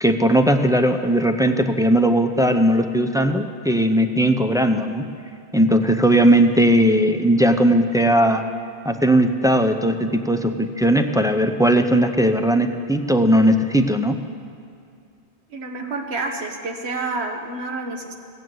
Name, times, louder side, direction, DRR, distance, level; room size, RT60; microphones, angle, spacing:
voice 1, 0.0-5.1 5.5-8.4 8.8-14.2, right 1 dB, 5° right, 5 dB, 0.4 m, -18 dB
voice 2, 15.5-18.1, right 3 dB, 85° right, 3 dB, 1.5 m, -29 dB
17.0 x 7.8 x 7.8 m, 2.5 s
omnidirectional pair, 1.1 m